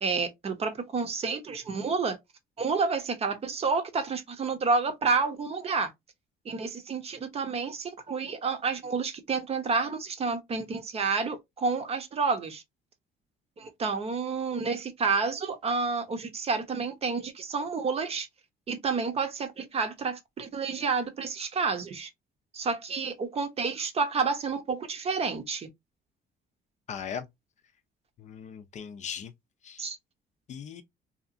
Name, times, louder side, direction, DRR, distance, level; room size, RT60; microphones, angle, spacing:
voice 1, 0.0-2.2 2.6-5.9 6.5-12.6 13.6-18.3 18.7-22.1 22.5-25.7 29.8-30.0, right 4 dB, 35° right, 0.7 m, -29 dB
voice 2, 26.9-27.3 28.2-29.3 29.6-29.9 30.5-30.8, left 7 dB, 45° left, 0.4 m, -38 dB
2.8 x 2.4 x 2.5 m
cardioid pair, 110°, 17 cm